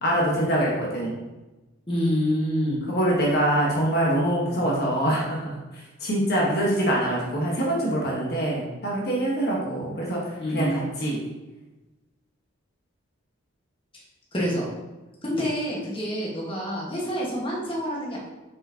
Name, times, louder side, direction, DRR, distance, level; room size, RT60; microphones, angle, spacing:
voice 1, 0.0-1.2 2.9-11.2, right 1 dB, 50° left, -4 dB, 1.2 m, -24 dB
voice 2, 1.9-2.8 10.4-10.9 14.3-14.7 15.2-18.2, equal, 25° left, -4 dB, 1.4 m, -27 dB
6.9 x 4.9 x 2.8 m, 1.1 s
head